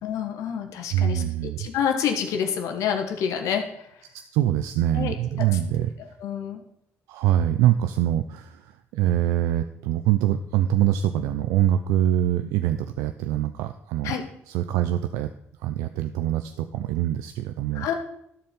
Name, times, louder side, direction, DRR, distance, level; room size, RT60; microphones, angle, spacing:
voice 1, 0.0-1.2 1.6-3.6 4.9-5.1 6.2-6.6 14.0-14.2 17.7-17.9, left 8 dB, 80° left, 5 dB, 1.3 m, -27 dB
voice 2, 0.9-1.7 4.1-5.9 7.1-14.1 14.5-15.3 15.6-17.9, right 12 dB, 90° right, 9 dB, 0.4 m, -24 dB
13.0 x 4.4 x 5.3 m, 0.75 s
supercardioid pair, 65°, 5 cm